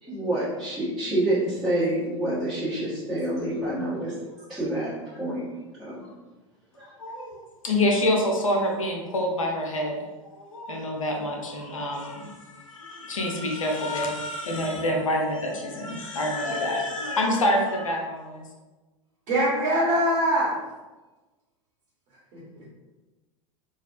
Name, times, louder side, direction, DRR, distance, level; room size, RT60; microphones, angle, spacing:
voice 1, 0.0-4.1 4.5-5.4 5.8-6.0 6.8-6.9, right 1 dB, ahead, -14 dB, 1.1 m, -27 dB
voice 2, 7.0-10.0 10.4-18.4, left 1 dB, 85° left, 1 dB, 0.6 m, -27 dB
voice 3, 19.3-20.6 22.3-22.7, equal, 45° right, -7 dB, 1.1 m, -24 dB
3.1 x 2.3 x 2.5 m, 1.2 s
figure-of-eight pair, 85°, 17 cm